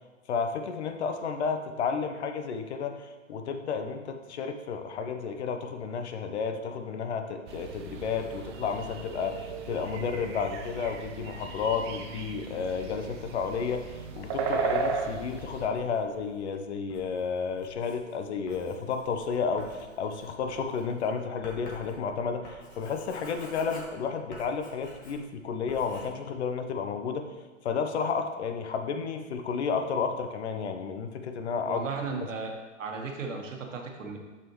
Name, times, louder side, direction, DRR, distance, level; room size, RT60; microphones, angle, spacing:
voice 1, 0.3-27.3 27.6-31.8 32.2-32.3, left 5 dB, 55° left, 6 dB, 0.9 m, -32 dB
sound 1, 7.5-15.7, right 4 dB, 20° right, 0.4 m, -35 dB
Writing, 15.1-25.4 25.7-26.1, left 1 dB, 20° left, 1.5 m, -49 dB
voice 2, 31.7-34.2, right 4 dB, 75° right, 2 dB, 1.5 m, -35 dB
7.7 x 6.1 x 3.1 m, 1.3 s
hypercardioid pair, 130°, 39 cm